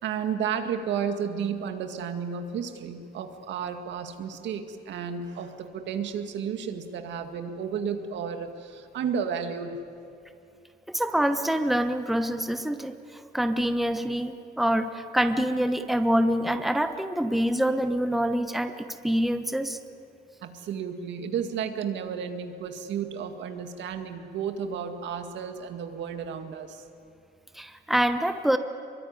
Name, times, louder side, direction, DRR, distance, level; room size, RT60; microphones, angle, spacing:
voice 1, 0.0-9.8 20.4-26.8, right 7 dB, 80° right, 6 dB, 2.1 m, -32 dB
voice 2, 10.9-18.7 19.0-19.8 27.5-28.6, equal, ahead, 8 dB, 1.1 m, -26 dB
24.5 x 23.0 x 9.7 m, 2.5 s
cardioid pair, 120°, 18 cm